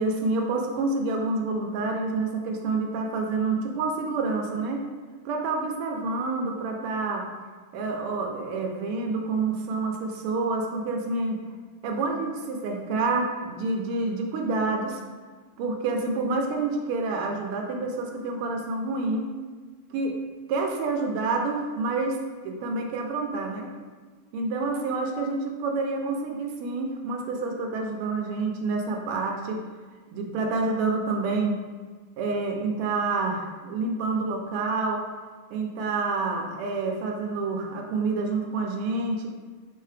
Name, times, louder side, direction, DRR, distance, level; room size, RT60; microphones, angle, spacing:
voice 1, 0.0-4.8 5.2-7.3 7.7-11.4 11.8-15.0 15.6-19.3 19.9-20.1 20.5-22.2 22.4-23.7 24.3-29.6 30.1-31.6 32.2-35.0 35.5-39.3, right 3 dB, 85° right, 2 dB, 1.6 m, -28 dB
5.3 x 2.7 x 3.3 m, 1.4 s
omnidirectional pair, 2.4 m